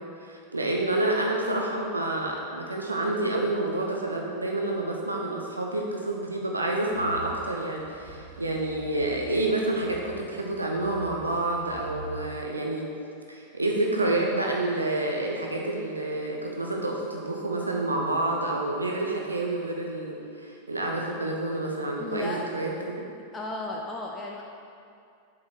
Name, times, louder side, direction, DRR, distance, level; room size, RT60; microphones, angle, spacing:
voice 1, 0.0-12.9 13.3-23.1, right 2 dB, 80° right, -1 dB, 0.7 m, -28 dB
sound 1, 6.9-12.3, right 3 dB, 65° right, 1.2 m, -45 dB
voice 2, 22.0-22.5 23.3-24.4, left 2 dB, 15° left, -1 dB, 0.6 m, -34 dB
7.3 x 5.0 x 4.7 m, 2.5 s
figure-of-eight pair, 90°, 0 cm